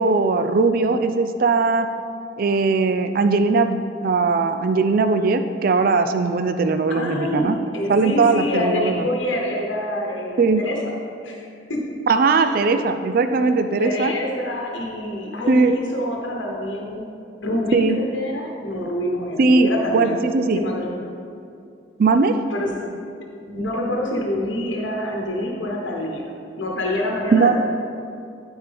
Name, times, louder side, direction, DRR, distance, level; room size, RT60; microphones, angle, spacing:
voice 1, 0.0-1.9 2.4-7.6 7.9-9.0 10.4-10.6 12.1-14.1 15.5-15.7 17.7-18.0 19.4-20.6 22.0-22.4 27.3-27.6, right 4 dB, 50° right, 9 dB, 0.3 m, -19 dB
voice 2, 6.9-10.8 11.2-11.8 12.4-12.5 13.8-17.1 17.4-20.1 20.5-20.9 22.5-22.7 23.5-26.3 26.6-27.6, left 1 dB, 90° left, -1 dB, 1.0 m, -26 dB
13.0 x 4.5 x 3.5 m, 2.5 s
head